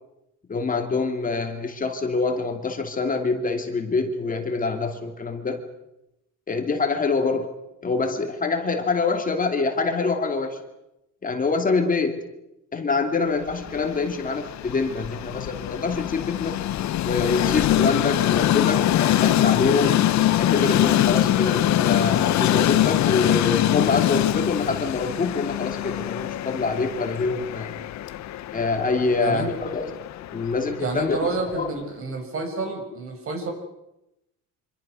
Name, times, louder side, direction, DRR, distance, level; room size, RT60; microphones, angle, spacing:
voice 1, 0.5-5.6 6.5-7.5 7.8-10.6 11.2-12.2 12.7-16.6 17.0-20.0 20.3-27.8 28.5-30.0 30.3-31.7, left 4 dB, 25° left, 5 dB, 2.7 m, -25 dB
Train, 13.5-31.6, left 13 dB, 60° left, 1.1 m, -23 dB
voice 2, 30.8-33.5, right 3 dB, 45° right, 4 dB, 5.8 m, -29 dB
26.0 x 25.5 x 6.3 m, 0.90 s
cardioid pair, 150°, 32 cm